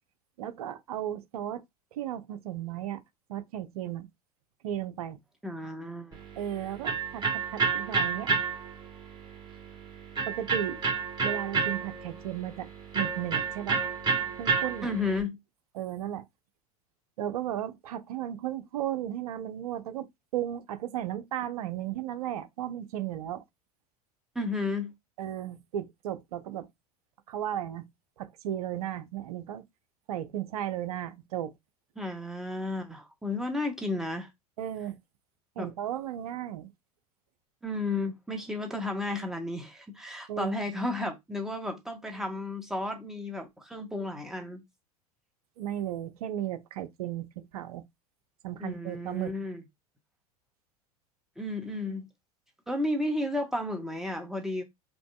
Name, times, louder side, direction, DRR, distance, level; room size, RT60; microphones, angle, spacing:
voice 1, 0.4-1.6 1.9-3.0 3.3-4.1 4.6-5.2 6.4-8.3 10.3-10.8 11.2-12.7 12.9-13.8 14.4-14.9 15.7-16.2 17.2-20.1 20.3-23.4 25.2-26.7 27.3-27.9 28.2-29.6 30.1-31.5 34.6-35.0 35.6-36.7 40.3-40.5 45.6-47.8 48.4-49.3, right 11 dB, 70° right, 0.7 m, -35 dB
voice 2, 5.4-6.2 14.8-15.4 24.3-24.9 32.0-34.3 35.6-35.7 37.6-44.6 48.6-49.6 51.4-52.1 52.7-54.6, left 2 dB, ahead, 1.3 m, -33 dB
Electric guitar, 6.1-15.2, right 5 dB, 20° right, 1.8 m, -31 dB
5.2 x 3.0 x 2.4 m
figure-of-eight pair, 80°, 20 cm